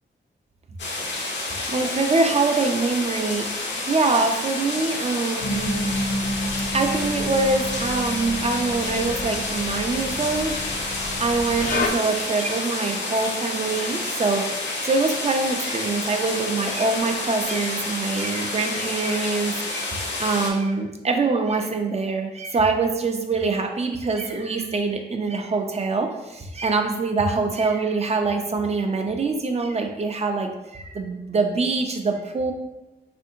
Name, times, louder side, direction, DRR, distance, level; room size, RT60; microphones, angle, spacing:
sound 1, 0.8-20.5, left 2 dB, 75° left, 0.7 m, -29 dB
voice 1, 0.9-1.4 1.7-3.5 3.8-5.9 6.7-10.9 11.2-32.5, right 3 dB, 35° right, 4 dB, 0.4 m, -24 dB
sound 2, 5.4-11.9, left 1 dB, 50° left, 0.4 m, -30 dB
3.6 x 2.5 x 2.7 m, 1.0 s
cardioid pair, 70°, 19 cm